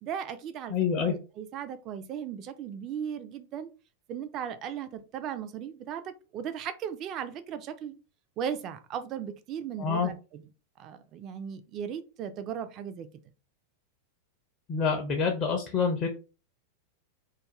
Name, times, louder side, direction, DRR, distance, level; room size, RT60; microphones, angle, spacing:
voice 1, 0.0-3.7 4.1-8.0 8.4-10.5 10.8-13.1, right 8 dB, 35° right, 9 dB, 0.3 m, -37 dB
voice 2, 0.7-1.1 9.8-10.1 14.7-16.1, left 6 dB, 35° left, 2 dB, 0.4 m, -27 dB
2.4 x 2.2 x 2.9 m, 0.33 s
figure-of-eight pair, 90°, 0 cm